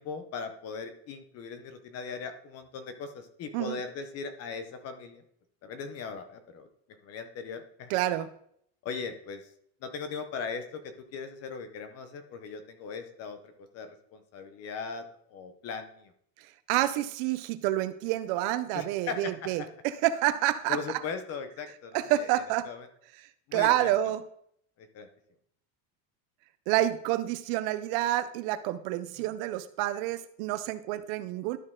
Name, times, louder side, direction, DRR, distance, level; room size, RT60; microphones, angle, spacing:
voice 1, 0.0-5.2 5.6-6.7 7.0-7.9 8.8-9.4 9.8-16.1 18.7-19.7 20.7-22.3 22.6-22.9 23.5-23.9 24.8-25.1, left 5 dB, 30° left, 9 dB, 0.6 m, -39 dB
voice 2, 7.9-8.3 16.7-21.0 21.9-22.7 23.5-24.2 26.7-31.6, right 14 dB, 55° right, 13 dB, 0.5 m, -28 dB
12.0 x 4.2 x 3.6 m, 0.67 s
cardioid pair, 175°, 47 cm